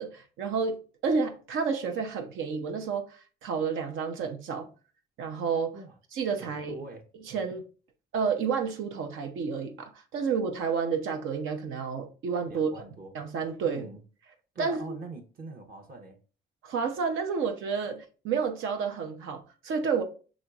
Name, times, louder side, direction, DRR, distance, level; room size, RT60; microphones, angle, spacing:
voice 1, 0.0-4.7 5.2-5.8 6.1-6.8 7.3-7.6 8.1-12.7 13.1-13.9 14.6-15.0 16.6-20.0, right 5 dB, 85° right, 0.7 m, -30 dB
voice 2, 6.4-7.0 12.5-13.1 13.6-14.0 14.5-16.2, right 3 dB, 50° right, 0.8 m, -43 dB
6.2 x 3.0 x 2.3 m
cardioid pair, 90°, 20 cm